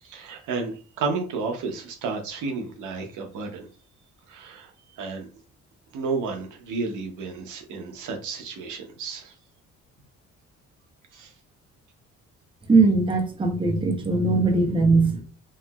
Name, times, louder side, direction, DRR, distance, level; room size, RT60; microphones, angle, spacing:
voice 1, 0.0-3.7 4.3-5.3 5.9-9.3 11.1-11.3, right 4 dB, 80° right, 3 dB, 0.8 m, -32 dB
voice 2, 12.7-15.2, right 3 dB, 15° right, 2 dB, 0.7 m, -20 dB
3.1 x 2.9 x 2.3 m, 0.37 s
cardioid pair, 90°, 30 cm